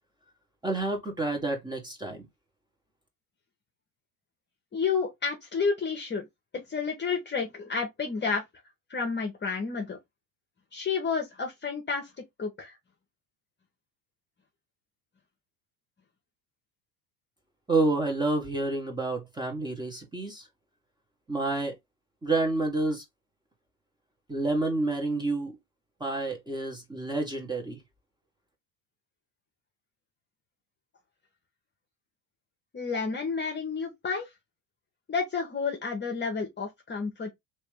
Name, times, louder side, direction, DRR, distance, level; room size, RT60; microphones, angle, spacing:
voice 1, 0.6-2.3 17.7-20.5 21.3-21.7 22.2-23.0 24.3-25.6 26.0-27.8, right 2 dB, 10° right, 1.6 m, -29 dB
voice 2, 4.7-6.3 6.5-8.4 8.9-10.0 10.7-12.1 12.4-12.8 32.7-34.3 35.1-37.3, left 5 dB, 25° left, 1.1 m, -30 dB
3.3 x 3.1 x 3.3 m
hypercardioid pair, 80°, 47 cm